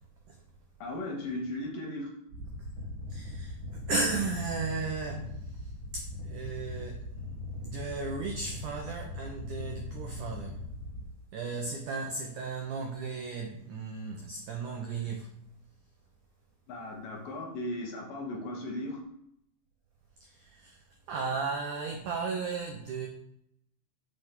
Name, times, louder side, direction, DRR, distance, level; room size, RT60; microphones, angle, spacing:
voice 1, 0.8-2.2 16.7-19.1, left 1 dB, 65° left, 1 dB, 2.4 m, -37 dB
sound 1, 2.3-11.1, left 2 dB, 55° right, 3.5 m, -40 dB
voice 2, 3.1-7.0 7.6-10.6 11.3-15.3 20.2-20.8 21.1-23.1, right 4 dB, 90° right, 2 dB, 1.7 m, -35 dB
6.5 x 5.9 x 6.6 m, 0.76 s
omnidirectional pair, 5.0 m